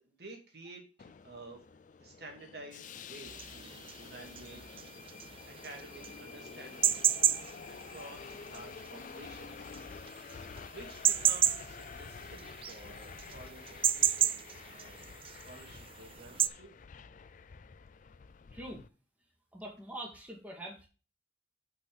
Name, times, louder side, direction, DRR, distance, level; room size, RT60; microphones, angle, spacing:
voice 1, 0.0-1.6 2.0-7.1 7.7-9.8 10.7-16.8, right 2 dB, 60° right, 1 dB, 2.4 m, -51 dB
Subway metro underground, 1.0-18.9, left 6 dB, 45° left, 0.4 m, -49 dB
sound 1, 3.3-16.5, right 10 dB, 30° right, 0.3 m, -32 dB
voice 2, 18.5-18.8 19.5-20.9, right 1 dB, 10° right, -1 dB, 2.2 m, -44 dB
8.5 x 5.8 x 4.0 m, 0.33 s
head